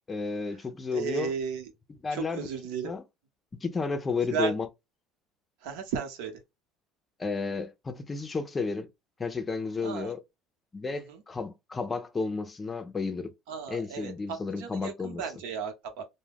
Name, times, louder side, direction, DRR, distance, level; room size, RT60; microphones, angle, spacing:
voice 1, 0.1-1.3 2.0-2.5 2.8-3.0 3.6-4.7 7.2-8.9 9.2-10.2 10.7-13.3 13.7-15.2, left 4 dB, 20° left, 0.5 m, -32 dB
voice 2, 0.9-1.7 2.1-2.9 4.2-4.5 5.6-6.4 9.8-10.1 10.9-11.2 13.5-16.0, right 6 dB, 90° right, 0.9 m, -34 dB
2.3 x 2.1 x 3.4 m
cardioid pair, 120°, 0 cm